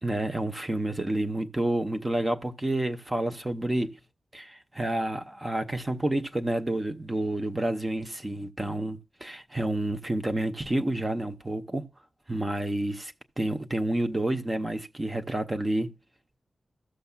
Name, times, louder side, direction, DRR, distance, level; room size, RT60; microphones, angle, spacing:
voice 1, 0.0-4.0 4.3-11.9 12.3-15.9, right 1 dB, 15° right, 0.7 m, -29 dB
14.5 x 6.8 x 2.3 m
wide cardioid pair, 175°, 0 cm